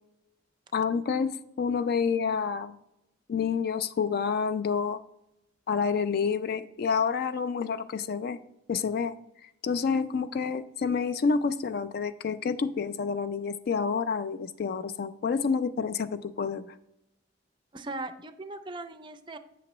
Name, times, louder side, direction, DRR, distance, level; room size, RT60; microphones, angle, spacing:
voice 1, 0.7-1.3 1.6-2.8 3.3-5.0 5.7-8.4 8.7-9.2 9.6-16.7, left 5 dB, 50° left, 11 dB, 0.3 m, -28 dB
voice 2, 17.7-19.4, right 2 dB, 25° right, 9 dB, 0.4 m, -39 dB
8.4 x 5.9 x 3.0 m, 0.85 s
head